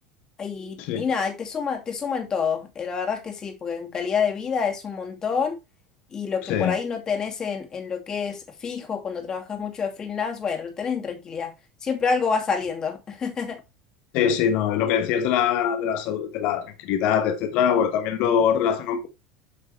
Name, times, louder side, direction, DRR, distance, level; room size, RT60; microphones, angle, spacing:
voice 1, 0.4-5.6 6.1-11.5 11.8-13.6, left 6 dB, 30° left, 2.4 m, -28 dB
voice 2, 6.4-6.8 14.1-19.1, left 8 dB, 60° left, 1.3 m, -23 dB
8.3 x 5.4 x 3.3 m
hypercardioid pair, 85°, 2 cm